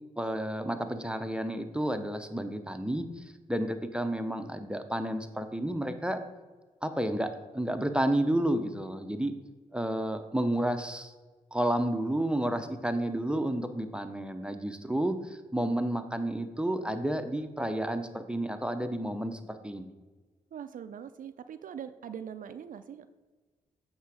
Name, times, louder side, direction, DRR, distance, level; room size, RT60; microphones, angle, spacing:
voice 1, 0.2-6.2 6.8-9.3 9.7-11.1 11.5-19.9, right 1 dB, 5° right, 7 dB, 0.7 m, -31 dB
voice 2, 20.5-23.1, right 8 dB, 60° right, 11 dB, 0.4 m, -42 dB
8.1 x 3.7 x 4.8 m, 1.3 s
supercardioid pair, 40°, 16 cm